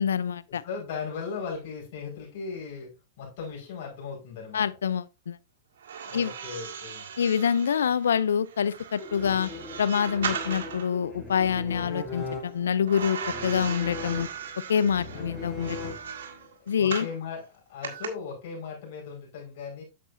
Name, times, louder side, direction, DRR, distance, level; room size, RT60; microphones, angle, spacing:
voice 1, 0.0-0.6 4.5-5.4 6.1-6.3 7.2-9.5 9.8-14.3 14.7-15.9 16.7-17.1, left 7 dB, 85° left, 0.5 m, -26 dB
voice 2, 0.6-2.9 3.2-4.6 6.0-7.1 15.1-15.4 16.8-17.4 17.7-19.8, left 5 dB, 60° left, 5.1 m, -37 dB
sound 1, 5.8-10.9 12.9-17.2 17.8-18.1, right 7 dB, 75° right, 1.8 m, -38 dB
sound 2, 9.0-16.5, left 3 dB, 15° left, 3.9 m, -39 dB
8.5 x 7.4 x 2.7 m
hypercardioid pair, 110°, 0 cm